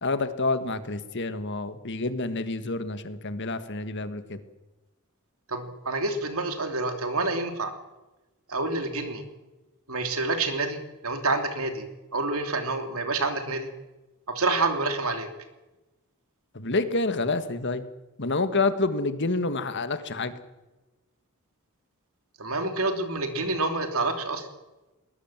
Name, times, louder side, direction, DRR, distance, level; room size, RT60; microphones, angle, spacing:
voice 1, 0.0-4.4 16.5-17.8 18.2-20.3, left 3 dB, 55° left, 10 dB, 1.7 m, -28 dB
voice 2, 5.5-7.7 8.5-9.2 9.9-11.9 12.1-13.7 14.3-15.3 22.4-24.5, right 3 dB, 70° right, 6 dB, 3.1 m, -28 dB
21.5 x 19.5 x 7.4 m, 1.1 s
head